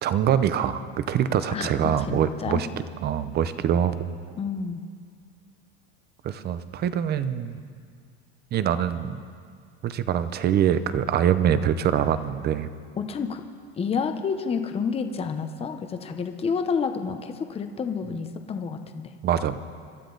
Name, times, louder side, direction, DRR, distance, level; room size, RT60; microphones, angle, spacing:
voice 1, 0.0-2.7 3.0-4.2 6.2-7.6 8.5-9.2 9.8-12.7 19.2-19.6, right 9 dB, 30° right, 12 dB, 0.7 m, -24 dB
voice 2, 2.1-2.7 4.4-4.8 13.0-13.4 13.8-19.2, left 5 dB, 20° left, 7 dB, 0.8 m, -29 dB
26.0 x 12.0 x 4.0 m, 2.1 s
supercardioid pair, 145°, 32 cm